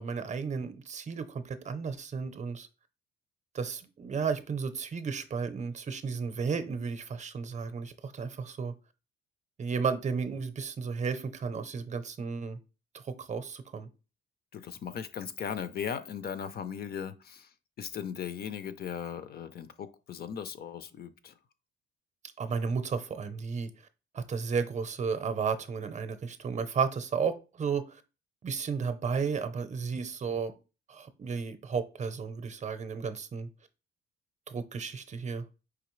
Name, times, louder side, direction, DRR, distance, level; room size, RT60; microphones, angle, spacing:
voice 1, 0.0-2.7 3.5-8.7 9.6-12.6 13.1-13.9 22.4-23.7 24.1-28.0 28.4-30.5 30.9-33.5 34.5-35.4, right 5 dB, 35° right, 0.6 m, -33 dB
voice 2, 14.5-21.4, left 8 dB, 50° left, 0.5 m, -38 dB
4.9 x 3.1 x 3.1 m
cardioid pair, 100°, 21 cm